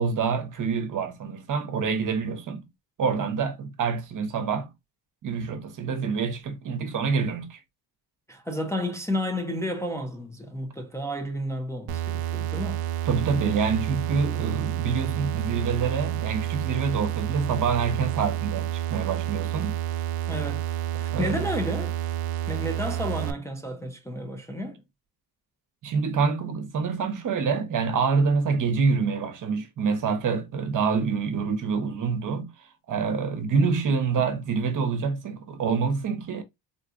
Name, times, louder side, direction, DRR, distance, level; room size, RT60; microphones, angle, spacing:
voice 1, 0.0-2.7 3.0-4.7 5.2-7.6 13.0-19.8 20.9-21.5 25.8-36.4, right 5 dB, 50° right, 0.9 m, -26 dB
voice 2, 8.3-12.8 20.3-20.7 21.0-22.0 22.5-24.8, equal, 5° left, 0.5 m, -31 dB
sound 1, 11.9-23.3, right 11 dB, 70° right, 0.5 m, -29 dB
3.9 x 2.4 x 2.4 m
cardioid pair, 105°, 40 cm